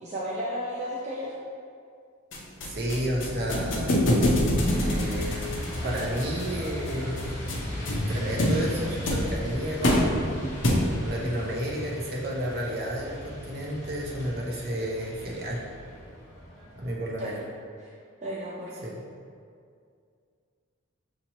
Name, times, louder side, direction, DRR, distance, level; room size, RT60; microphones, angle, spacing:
voice 1, 0.0-1.4 17.2-17.5 17.8-17.9 18.2-18.9, equal, 35° right, -5 dB, 0.3 m, -34 dB
sound 1, 2.3-11.2, left 1 dB, 70° left, 0.6 m, -27 dB
voice 2, 2.7-4.2 4.7-5.5 5.8-7.3 7.9-10.4 11.0-15.6 16.7-17.4 18.8-19.0, equal, 50° right, -4 dB, 0.7 m, -32 dB
Truck, 4.6-16.9, equal, 15° left, 0.8 m, -39 dB
5.8 x 2.9 x 2.9 m, 2.3 s
head